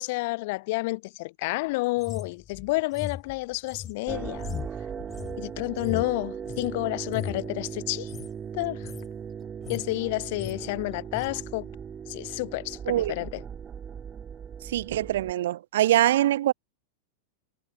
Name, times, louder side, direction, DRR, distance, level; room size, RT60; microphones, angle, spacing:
voice 1, 0.0-4.5 5.4-8.1 8.5-8.9 9.7-11.7 12.1-13.4, left 23 dB, 50° left, 1.0 m, -30 dB
sound 1, 2.0-6.7 7.0-7.5 8.0-8.3 8.6-9.1 9.4-9.9 10.2-10.6 11.1-11.3, left 9 dB, 25° left, 4.6 m, -38 dB
sound 2, 4.1-15.3, right 7 dB, 20° right, 2.8 m, -38 dB
voice 2, 14.7-16.5, right 13 dB, 60° right, 0.8 m, -23 dB
figure-of-eight pair, 90°, 0 cm